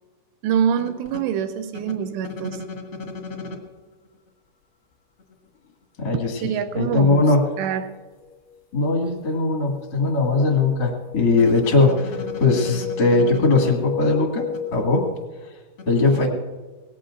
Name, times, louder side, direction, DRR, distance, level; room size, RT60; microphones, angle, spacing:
voice 1, 0.4-2.6 6.4-7.3 7.6-7.9, right 8 dB, 85° right, 9 dB, 2.5 m, -25 dB
voice 2, 6.0-6.4 6.7-7.4 8.7-14.4 14.7-15.0 15.8-16.3, left 3 dB, 60° left, -1 dB, 1.1 m, -19 dB
sound 1, 8.2-8.5 9.0-15.3, left 8 dB, 90° left, 3.4 m, -33 dB
24.0 x 18.5 x 2.5 m, 1.3 s
omnidirectional pair, 5.5 m